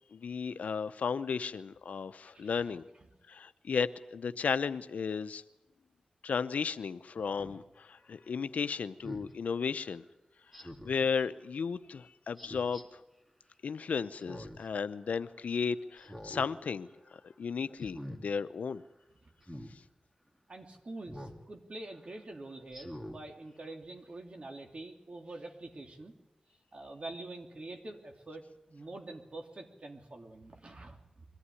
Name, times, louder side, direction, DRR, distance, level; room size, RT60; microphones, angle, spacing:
voice 1, 0.1-2.8 3.3-5.4 6.2-10.0 10.6-13.0 13.6-16.9 17.2-18.8, left 6 dB, 90° left, 12 dB, 0.7 m, -34 dB
voice 2, 2.3-2.7 19.2-19.3 20.5-26.1 26.7-31.2, right 2 dB, 50° right, 3 dB, 3.0 m, -46 dB
Speech synthesizer, 7.4-7.6 9.0-9.3 10.5-11.0 12.4-12.8 14.1-14.7 15.1-15.2 16.0-16.5 16.9-17.2 17.8-18.2 19.4-19.7 21.1-21.4 21.9-22.0 22.7-23.2 23.7-23.8, equal, 10° right, 2.7 m, -45 dB
23.0 x 14.5 x 9.8 m, 0.96 s
cardioid pair, 55°, 2 cm